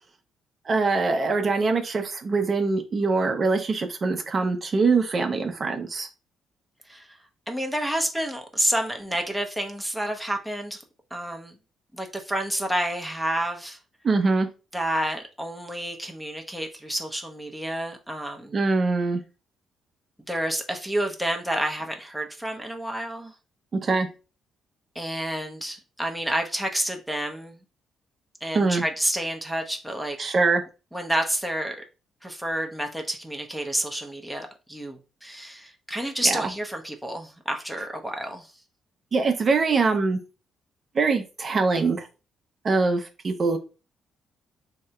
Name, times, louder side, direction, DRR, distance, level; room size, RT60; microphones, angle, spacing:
voice 1, 0.7-6.1 14.0-14.5 18.5-19.2 23.8-24.1 28.5-28.8 30.2-30.6 36.3-36.4 39.1-40.2 40.9-42.1 42.6-43.6, right 4 dB, 40° right, 0.7 m, -23 dB
voice 2, 6.9-7.2 7.5-10.8 11.1-11.5 11.9-13.8 14.7-18.6 20.3-23.3 24.9-27.6 28.4-30.2 30.9-31.8 32.2-38.5, right 1 dB, ahead, 0.8 m, -29 dB
3.5 x 2.8 x 3.3 m
cardioid pair, 90°, 0 cm